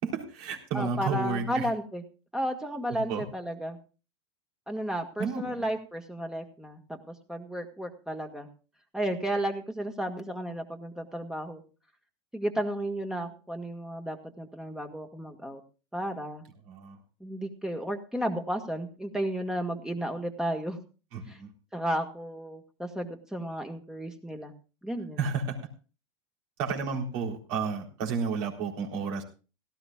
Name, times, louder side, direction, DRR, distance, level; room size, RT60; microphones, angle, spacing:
voice 1, 0.0-1.7 2.9-3.2 5.2-5.7 16.7-17.0 21.1-21.5 25.2-25.6 26.6-29.2, right 5 dB, 60° right, 2 dB, 3.9 m, -32 dB
voice 2, 0.7-2.0 2.3-3.8 4.7-8.5 8.9-11.6 12.3-15.6 15.9-16.4 17.2-20.8 21.3-21.4 21.7-24.5 24.8-25.2, right 1 dB, 5° right, 5 dB, 1.7 m, -33 dB
17.5 x 14.5 x 2.4 m, 0.34 s
hypercardioid pair, 110°, 16 cm